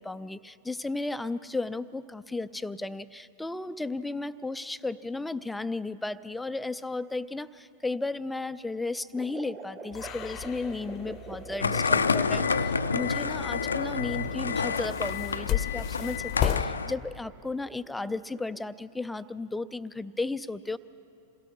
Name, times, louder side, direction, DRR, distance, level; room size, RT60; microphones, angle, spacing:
voice 1, 0.0-20.8, left 3 dB, 5° left, 15 dB, 0.5 m, -34 dB
sound 1, 9.1-18.7, right 4 dB, 25° right, 1.7 m, -45 dB
sound 2, 9.9-16.7, left 11 dB, 35° left, 0.8 m, -34 dB
sound 3, 11.6-16.9, left 5 dB, 75° left, 0.5 m, -29 dB
27.0 x 17.5 x 5.6 m, 2.6 s
figure-of-eight pair, 90°, 0 cm